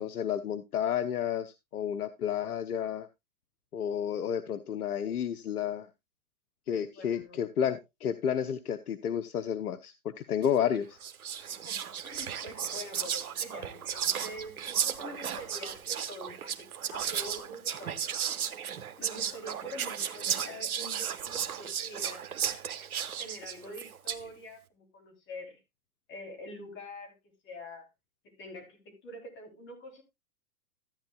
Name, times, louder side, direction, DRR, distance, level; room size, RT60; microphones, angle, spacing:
voice 1, 0.0-3.1 3.7-5.9 6.7-9.9 10.3-11.0, left 9 dB, 85° left, 0.8 m, -31 dB
voice 2, 6.9-7.4 11.4-18.2 19.0-22.3 23.2-25.6 26.1-27.1 27.4-27.9 28.2-30.0, left 1 dB, 25° left, 3.4 m, -45 dB
Whispering, 10.4-10.6 11.0-24.3, right 8 dB, 80° right, 1.0 m, -34 dB
13.5 x 9.1 x 2.3 m
hypercardioid pair, 125°, 43 cm